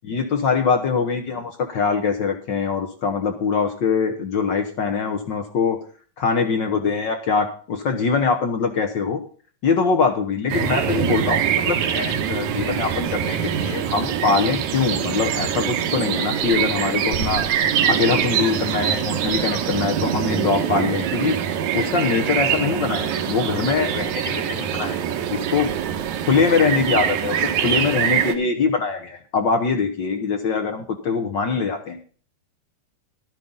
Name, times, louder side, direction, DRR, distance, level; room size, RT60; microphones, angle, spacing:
voice 1, 0.0-5.8 6.2-9.2 9.6-17.4 17.8-21.4 21.7-25.7 26.3-27.4 27.6-32.0, left 5 dB, 65° left, 6 dB, 1.1 m, -23 dB
sound 1, 10.5-28.3, right 9 dB, 75° right, 2.4 m, -24 dB
13.0 x 12.0 x 3.9 m, 0.42 s
omnidirectional pair, 3.4 m